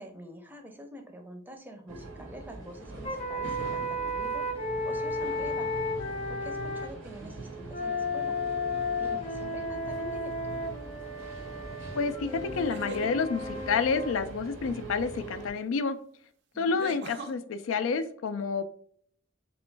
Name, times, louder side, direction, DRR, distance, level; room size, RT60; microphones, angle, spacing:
voice 1, 0.0-4.5 4.8-5.7 6.3-8.4 8.9-10.6 16.5-17.0, equal, 10° right, 4 dB, 0.5 m, -46 dB
sound 1, 1.9-15.5, right 3 dB, 85° right, 1.0 m, -42 dB
sound 2, 3.0-6.9 7.7-14.2, left 2 dB, 30° left, 0.6 m, -33 dB
sound 3, 9.9-10.3 12.5-13.1 15.4-15.5 16.8-17.3, right 4 dB, 60° right, 0.5 m, -41 dB
voice 2, 11.9-16.0 16.6-18.6, left 5 dB, 85° left, 11 dB, 0.4 m, -29 dB
3.0 x 3.0 x 3.2 m, 0.62 s
head